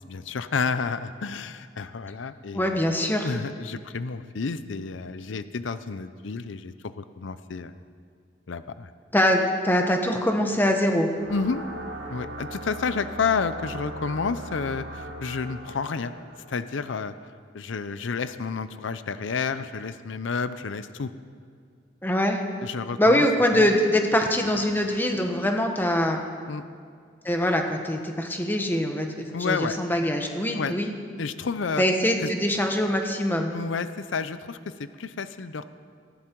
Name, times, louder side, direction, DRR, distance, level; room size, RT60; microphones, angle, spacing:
voice 1, 0.1-2.8 3.2-7.7 8.5-8.9 11.3-11.6 12.1-16.1 16.5-17.1 17.5-21.1 22.6-23.2 26.5-26.6 29.3-29.8 30.5-30.7 31.2-31.8 32.2-32.3 33.5-35.6, left 5 dB, 85° left, 13 dB, 0.6 m, -30 dB
voice 2, 2.5-3.4 9.1-11.1 22.0-22.4 23.0-26.2 27.2-30.9 31.8-33.5, left 1 dB, 10° left, 3 dB, 1.2 m, -23 dB
sound 1, 11.1-17.2, right 1 dB, 80° right, 2.0 m, -39 dB
18.5 x 15.5 x 4.6 m, 2.2 s
head